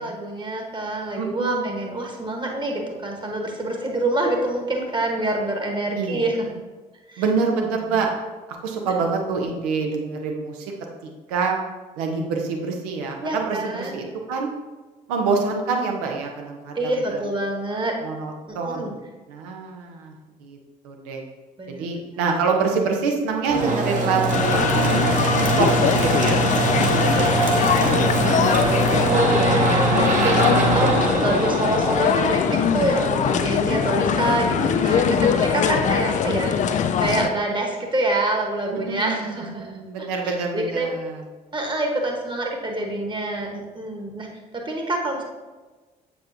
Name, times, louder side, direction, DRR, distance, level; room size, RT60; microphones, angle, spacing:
voice 1, 0.0-6.4 7.1-7.2 7.9-8.0 13.2-14.0 16.7-17.9 18.5-18.9 21.6-21.9 27.0-40.9 41.5-44.3 44.5-45.2, right 1 dB, 25° right, 2 dB, 1.4 m, -26 dB
voice 2, 1.2-1.7 6.0-6.2 7.2-8.1 8.6-10.7 11.0-11.6 12.0-14.5 15.1-17.2 18.0-18.9 19.3-20.1 20.4-20.6 20.8-21.2 21.7-25.2 25.6-26.4 31.6-31.7 34.5-35.0 38.7-41.2, right 4 dB, 70° right, 2 dB, 0.9 m, -26 dB
sound 1, 23.4-33.0, right 3 dB, 40° right, 1.2 m, -22 dB
sound 2, 24.3-37.3, left 7 dB, 40° left, 0.4 m, -22 dB
7.5 x 4.5 x 2.8 m, 1.3 s
figure-of-eight pair, 50°, 20 cm